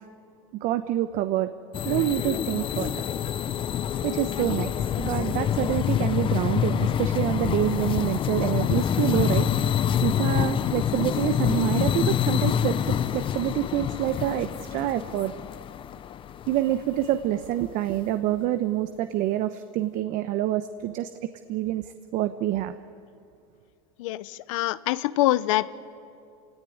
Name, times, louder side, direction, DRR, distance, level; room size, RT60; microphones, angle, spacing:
voice 1, 0.6-1.5 1.8-3.0 4.0-4.7 5.0-9.5 10.0-15.3 16.5-21.1 21.5-22.8, right 13 dB, 50° right, 10 dB, 1.0 m, -27 dB
sound 1, 1.7-17.0, left 9 dB, 30° left, 0.7 m, -26 dB
voice 2, 24.0-25.7, left 16 dB, 70° left, 16 dB, 0.9 m, -25 dB
27.5 x 17.5 x 9.9 m, 2.5 s
supercardioid pair, 115°, 17 cm